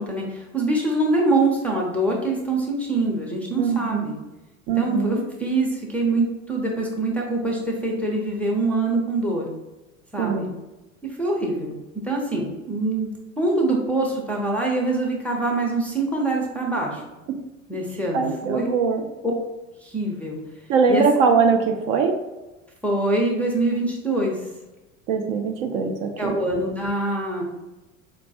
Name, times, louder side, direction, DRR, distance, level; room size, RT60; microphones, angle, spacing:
voice 1, 0.0-4.2 4.8-9.5 10.1-10.5 11.2-11.8 12.0-13.1 13.4-17.0 17.7-18.7 19.8-20.4 20.9-21.0 22.8-24.5 26.2-27.4, right 2 dB, 5° left, -1 dB, 0.5 m, -24 dB
voice 2, 3.6-4.1 4.7-5.2 10.2-10.5 18.1-19.0 20.7-22.2 25.1-26.4, right 5 dB, 45° right, 3 dB, 0.4 m, -21 dB
4.4 x 2.2 x 2.7 m, 1.0 s
figure-of-eight pair, 75°, 40 cm